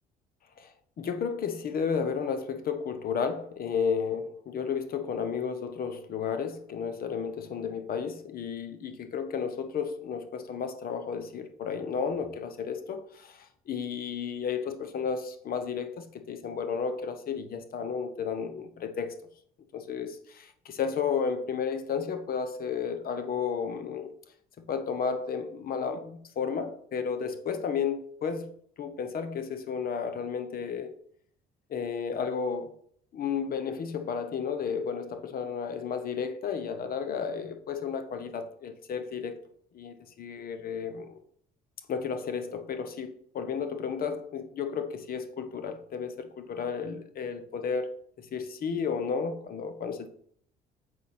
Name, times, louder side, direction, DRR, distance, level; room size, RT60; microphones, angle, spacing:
voice 1, 0.6-19.1 19.7-24.1 24.7-28.5 28.8-30.9 31.7-32.8 33.1-39.4 39.7-41.2 41.9-47.9 48.2-50.1, left 6 dB, 55° left, 1.0 m, -33 dB
6.8 x 5.3 x 4.3 m
supercardioid pair, 75°, 18 cm